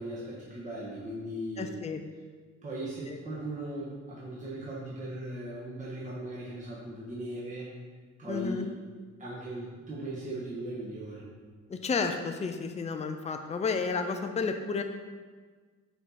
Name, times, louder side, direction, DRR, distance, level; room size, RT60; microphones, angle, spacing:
voice 1, 0.0-1.7 2.6-7.7 8.2-8.7 9.2-11.2, right 1 dB, 25° right, -7 dB, 1.5 m, -38 dB
voice 2, 1.6-2.0 3.1-3.2 8.3-8.7 11.7-14.8, left 5 dB, 20° left, 6 dB, 0.5 m, -31 dB
9.1 x 4.6 x 4.2 m, 1.5 s
cardioid pair, 140°, 30 cm